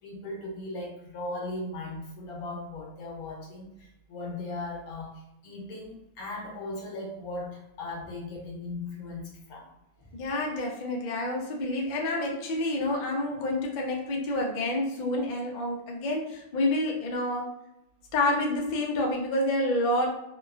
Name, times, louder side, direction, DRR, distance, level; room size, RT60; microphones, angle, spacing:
voice 1, 0.0-9.7, left 2 dB, 85° left, -1 dB, 1.2 m, -38 dB
voice 2, 10.1-17.5 18.1-20.2, left 1 dB, 65° left, 0 dB, 0.4 m, -28 dB
2.9 x 2.3 x 2.3 m, 0.88 s
omnidirectional pair, 1.5 m